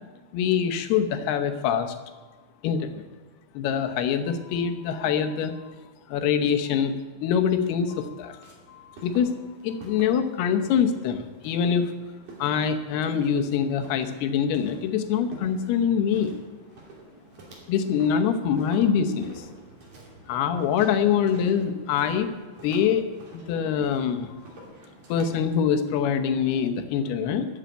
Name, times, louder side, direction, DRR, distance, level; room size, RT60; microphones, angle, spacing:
voice 1, 0.3-2.0 2.6-3.0 3.6-5.5 6.1-8.4 8.7-9.4 9.6-11.9 12.4-16.3 17.7-19.4 20.3-22.3 22.6-23.0 23.3-24.3 25.1-27.5, left 7 dB, 80° left, 7 dB, 2.9 m, -24 dB
Walk footsteps, 7.7-25.4, right 2 dB, 50° right, 4.0 m, -49 dB
13.5 x 7.3 x 9.0 m, 1.4 s
omnidirectional pair, 4.6 m